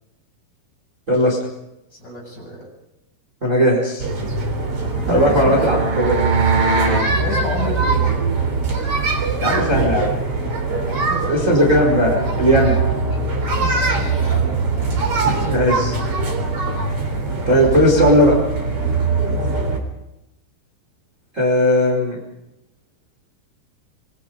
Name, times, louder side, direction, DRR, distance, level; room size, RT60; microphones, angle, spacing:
voice 1, 1.1-1.4 3.4-4.1 5.1-6.2 9.4-10.1 11.3-12.8 15.5-15.9 17.5-18.3 21.3-22.2, equal, 15° right, -1 dB, 4.5 m, -17 dB
voice 2, 1.9-2.7 5.1-5.6 6.4-6.7 7.1-8.2 10.7-11.4 13.5-14.6 15.2-15.7 19.2-19.4, right 1 dB, 20° left, -1 dB, 8.1 m, -30 dB
sound 1, 4.0-19.8, right 4 dB, 35° right, 4.2 m, -21 dB
sound 2, 4.5-7.1, right 3 dB, 70° right, 8.0 m, -23 dB
27.0 x 24.0 x 5.2 m, 0.91 s
omnidirectional pair, 5.3 m